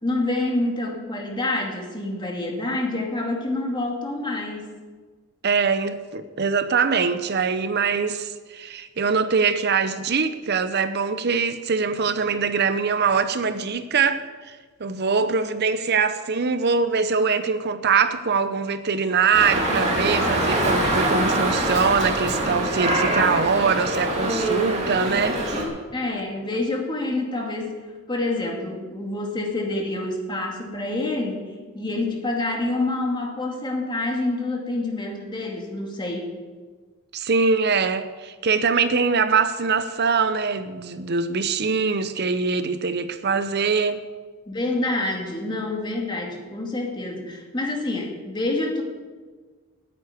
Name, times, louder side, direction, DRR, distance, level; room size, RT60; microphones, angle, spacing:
voice 1, 0.0-4.7 25.9-27.8 28.1-31.5 31.7-36.3 44.5-48.8, left 2 dB, 20° left, 2.4 m, -27 dB
voice 2, 5.4-25.4 37.1-44.0, right 5 dB, 50° right, 0.7 m, -23 dB
Dog, 19.3-25.6, right 1 dB, 30° right, 2.6 m, -24 dB
9.9 x 9.6 x 9.5 m
head